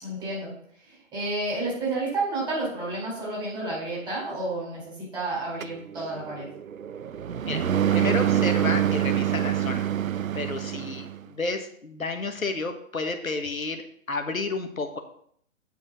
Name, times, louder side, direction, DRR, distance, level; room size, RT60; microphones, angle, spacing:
voice 1, 0.0-0.5 0.9-6.5, right 2 dB, 10° right, -5 dB, 4.4 m, -30 dB
sound 1, 5.6-11.2, right 10 dB, 80° right, 0.6 m, -26 dB
voice 2, 7.9-9.9 10.3-15.0, left 3 dB, 90° left, 6 dB, 1.4 m, -31 dB
8.6 x 7.3 x 4.0 m, 0.63 s
figure-of-eight pair, 135°, 40 cm